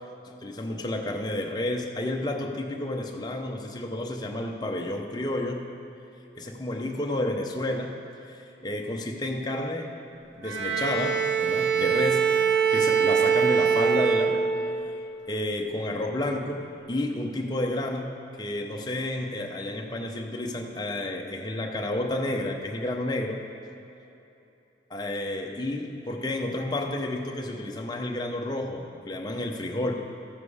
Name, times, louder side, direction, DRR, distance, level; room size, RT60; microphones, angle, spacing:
voice 1, 0.4-5.7 6.4-8.0 8.2-9.9 10.4-12.3 12.7-14.5 15.3-23.4 24.9-29.9, left 1 dB, 20° left, 2 dB, 0.7 m, -31 dB
Bowed string instrument, 10.4-14.9, right 6 dB, 90° right, 1.1 m, -23 dB
14.0 x 7.5 x 4.9 m, 2.9 s
head